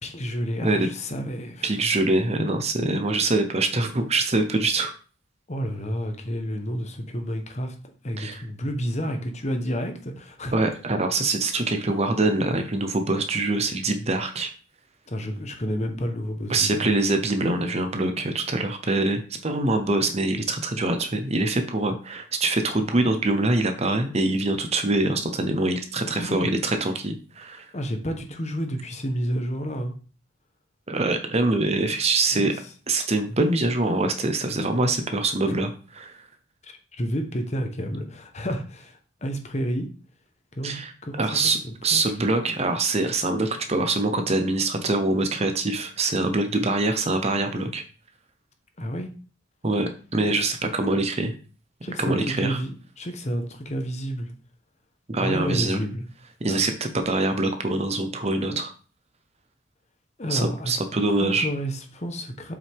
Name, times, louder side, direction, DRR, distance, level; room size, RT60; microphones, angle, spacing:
voice 1, 0.0-1.7 5.5-7.7 8.0-10.6 15.1-16.8 26.2-26.5 27.7-29.9 32.3-32.6 35.5-35.6 36.6-39.9 40.5-42.0 48.8-49.1 51.8-54.3 55.2-56.0 56.5-56.6 60.2-60.7 61.1-62.6, equal, 35° left, 5 dB, 1.2 m, -30 dB
voice 2, 1.6-4.9 8.2-8.4 10.5-14.5 16.5-27.6 30.9-32.6 32.9-36.2 40.6-40.9 41.2-47.8 49.6-51.3 52.0-52.6 55.1-55.8 56.4-58.7 60.3-61.5, right 2 dB, 30° right, 6 dB, 0.9 m, -24 dB
7.8 x 5.6 x 3.6 m, 0.37 s
head